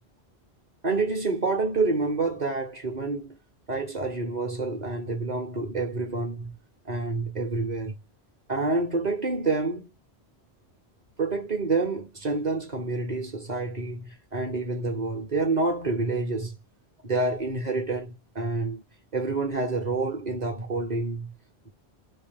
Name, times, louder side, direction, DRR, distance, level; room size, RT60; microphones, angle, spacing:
voice 1, 0.8-3.4 3.7-6.5 6.8-7.9 8.5-9.9 11.2-16.6 17.0-18.8 19.1-21.3 21.6-21.7, right 3 dB, 40° right, 1.3 m, -28 dB
6.2 x 2.2 x 3.6 m
omnidirectional pair, 1.1 m